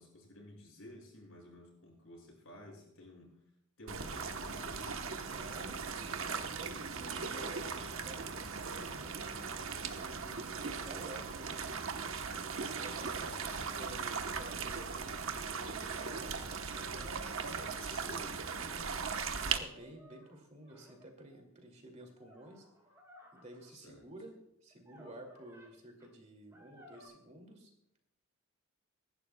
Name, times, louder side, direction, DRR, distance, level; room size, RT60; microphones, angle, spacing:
voice 1, 0.0-3.3 3.8-5.1 17.8-19.0 23.7-24.1, left 1 dB, 65° left, 0 dB, 6.3 m, -53 dB
sound 1, 3.9-19.6, right 5 dB, 65° right, 1.1 m, -39 dB
voice 2, 5.3-5.8 6.4-9.5 10.0-11.6 12.6-17.4 19.4-22.7 23.3-27.7, right 1 dB, 30° right, 3 dB, 2.4 m, -52 dB
sound 2, 15.1-15.3 16.0-18.7 19.3-21.4 22.0-23.7 24.7-25.7 26.0-26.1 26.5-27.1, equal, 15° right, 3.9 m, -61 dB
24.5 x 12.0 x 2.3 m, 0.76 s
head